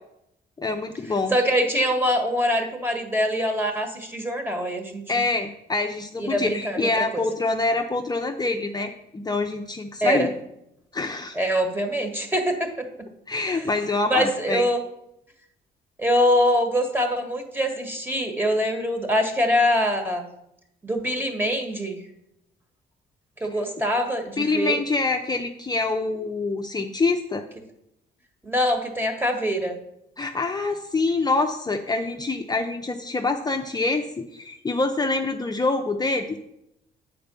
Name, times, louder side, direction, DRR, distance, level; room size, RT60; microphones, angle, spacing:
voice 1, 0.6-1.3 5.1-10.3 10.9-11.4 13.3-14.6 23.5-23.6 24.4-27.4 30.2-36.4, left 3 dB, 20° left, 3 dB, 0.6 m, -25 dB
voice 2, 1.3-5.0 6.2-7.2 10.0-10.3 11.3-12.9 13.5-13.7 14.1-14.8 16.0-20.2 20.8-22.0 23.4-24.8 28.4-29.8, equal, 10° right, 4 dB, 1.6 m, -24 dB
8.5 x 4.4 x 6.9 m, 0.81 s
cardioid pair, 90°, 20 cm